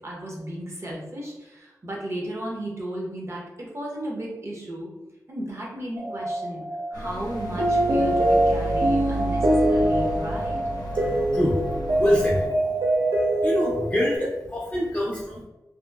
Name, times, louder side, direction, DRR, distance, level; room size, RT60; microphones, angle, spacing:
voice 1, 0.0-4.9 5.3-6.6 6.9-10.6, right 1 dB, 45° right, -2 dB, 0.8 m, -34 dB
sound 1, 6.0-14.2, right 1 dB, 90° right, 0.6 m, -24 dB
sound 2, 6.9-12.5, right 2 dB, 90° left, 0.5 m, -33 dB
voice 2, 11.0-11.6 12.0-12.6 13.4-15.4, equal, 25° left, -5 dB, 0.5 m, -25 dB
2.8 x 2.6 x 2.3 m, 1.0 s
wide cardioid pair, 95°, 7 cm